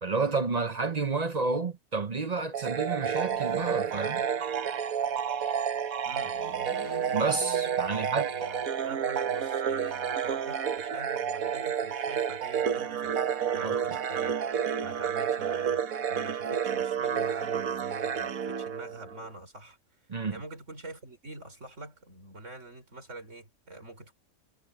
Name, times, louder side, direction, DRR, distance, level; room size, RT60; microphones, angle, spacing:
voice 1, 0.0-4.2 7.1-8.5 13.6-13.8 20.1-20.4, right 4 dB, 35° right, 0.7 m, -30 dB
sound 1, 2.5-19.3, right 8 dB, 85° right, 1.6 m, -30 dB
sound 2, 3.1-4.8 6.1-8.3, left 1 dB, 80° left, 4.1 m, -48 dB
voice 2, 6.0-6.3 7.9-13.2 13.5-14.5 14.8-15.8 16.1-19.8 20.3-24.1, right 2 dB, 60° right, 5.8 m, -45 dB
omnidirectional pair, 1.4 m